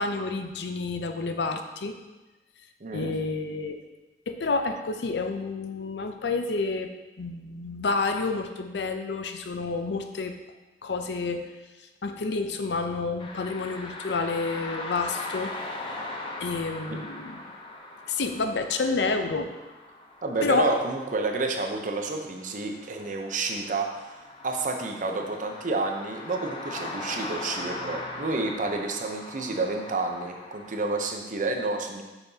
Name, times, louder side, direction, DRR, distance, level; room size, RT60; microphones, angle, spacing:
voice 1, 0.0-2.0 2.9-3.8 4.3-6.9 7.2-10.4 10.8-11.5 12.0-15.6 16.4-17.4 18.1-19.5 20.4-20.7, left 3 dB, 70° left, 6 dB, 0.5 m, -29 dB
voice 2, 2.8-3.1 20.2-23.9 24.4-32.0, right 3 dB, 45° right, 3 dB, 0.7 m, -29 dB
sound 1, 13.2-31.1, left 2 dB, 30° left, 0.6 m, -40 dB
6.9 x 5.7 x 2.7 m, 1.1 s
head